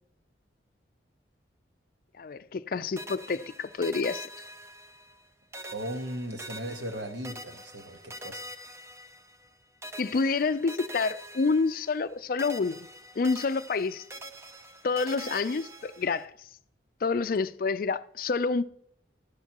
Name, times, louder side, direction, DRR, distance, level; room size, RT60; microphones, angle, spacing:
voice 1, 2.2-4.3 10.0-12.9 13.2-14.0 14.8-16.3 17.0-18.6, left 4 dB, 50° left, 0.4 m, -28 dB
sound 1, 3.0-5.3 5.5-9.5 9.8-12.1 12.4-16.2, equal, 15° right, 0.6 m, -44 dB
voice 2, 5.7-8.4, right 1 dB, 70° right, 1.3 m, -37 dB
12.0 x 10.5 x 2.9 m
head